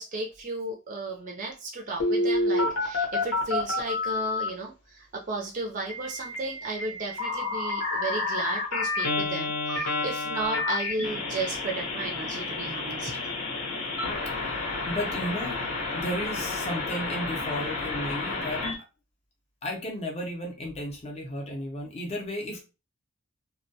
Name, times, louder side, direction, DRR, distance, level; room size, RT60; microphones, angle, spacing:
voice 1, 0.0-13.1, right 2 dB, 35° right, 1 dB, 0.4 m, -34 dB
Telephone, 2.0-4.5 5.9-18.7, left 2 dB, 80° left, 0.8 m, -30 dB
voice 2, 14.3-15.7 15.9-18.7 19.6-22.6, equal, 30° left, 1 dB, 0.5 m, -34 dB
2.2 x 2.1 x 2.7 m, 0.29 s
head